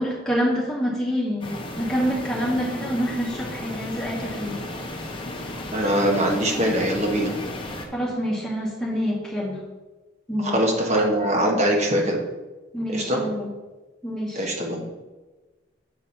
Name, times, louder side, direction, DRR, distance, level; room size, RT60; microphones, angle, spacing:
voice 1, 0.0-4.6 7.9-9.6 10.3-10.6 12.7-13.5 14.0-14.5, equal, 5° left, -6 dB, 2.2 m, -26 dB
sound 1, 1.4-7.9, left 1 dB, 25° left, 1.0 m, -34 dB
voice 2, 5.7-7.3 10.4-12.2 12.9-13.2 14.3-14.8, right 1 dB, 35° right, 0 dB, 1.3 m, -22 dB
8.0 x 4.8 x 5.8 m, 1.2 s
head